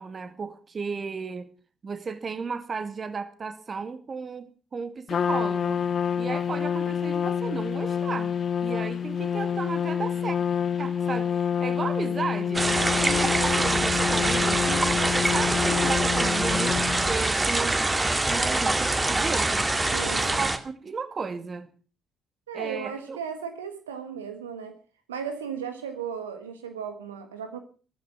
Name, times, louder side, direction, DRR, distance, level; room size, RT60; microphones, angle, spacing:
voice 1, 0.0-1.5 1.8-5.8 6.2-8.3 8.6-10.4 10.8-12.7 13.0-17.9 18.3-19.7 20.1-21.7 22.5-23.2, right 5 dB, 40° right, 2.1 m, -34 dB
Trumpet, 5.1-17.2, left 8 dB, 45° left, 0.7 m, -27 dB
sound 1, 12.5-20.6, right 2 dB, 20° right, 2.1 m, -24 dB
voice 2, 19.9-20.4 22.5-24.8 25.1-27.6, right 7 dB, 80° right, 1.5 m, -35 dB
14.5 x 14.0 x 6.0 m
figure-of-eight pair, 45°, 0 cm